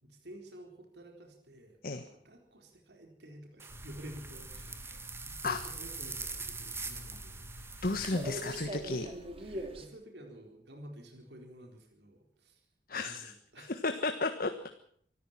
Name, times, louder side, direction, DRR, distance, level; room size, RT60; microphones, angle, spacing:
voice 1, 0.0-7.9 9.4-12.7 12.9-13.7, right 1 dB, 70° right, 2 dB, 4.2 m, -51 dB
sound 1, 3.6-8.6, right 4 dB, 15° right, 1.9 m, -43 dB
sound 2, 3.7-9.9, right 1 dB, 35° right, 2.8 m, -44 dB
voice 2, 7.8-9.1 12.9-14.5, left 3 dB, 55° left, 8 dB, 1.4 m, -33 dB
25.0 x 14.0 x 7.5 m, 0.64 s
head